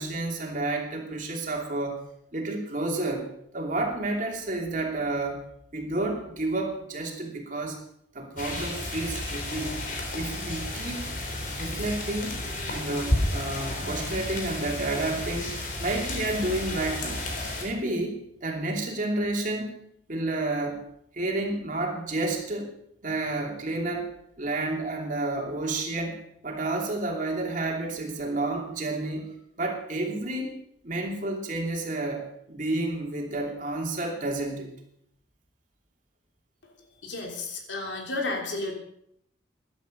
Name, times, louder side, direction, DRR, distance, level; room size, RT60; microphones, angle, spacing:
voice 1, 0.0-2.0 2.3-3.3 3.5-5.4 5.7-7.8 8.1-9.7 10.1-11.1 11.6-12.3 12.7-15.5 15.8-17.3 17.6-19.7 20.1-20.8 21.1-22.7 23.0-26.2 26.4-30.6 30.8-34.7, right 2 dB, 45° right, 1 dB, 2.9 m, -30 dB
sound 1, 8.4-17.6, left 1 dB, 45° left, 3.5 m, -32 dB
voice 2, 37.0-38.7, left 2 dB, 80° left, 1 dB, 3.2 m, -32 dB
15.5 x 11.5 x 5.3 m, 0.73 s
head